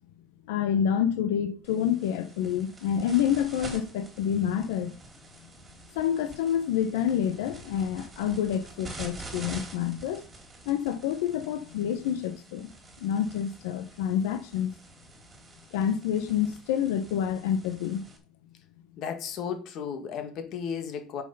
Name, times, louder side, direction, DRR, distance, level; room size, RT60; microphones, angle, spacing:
voice 1, 0.5-5.0 5.9-10.3 10.7-12.7 13.0-14.7 15.7-18.0, left 9 dB, 90° left, 0.9 m, -28 dB
sound 1, 1.6-18.2, right 3 dB, 20° right, 3.1 m, -47 dB
voice 2, 19.0-21.2, left 7 dB, 50° left, 1.9 m, -34 dB
8.6 x 6.3 x 5.5 m
cardioid pair, 140°, 0 cm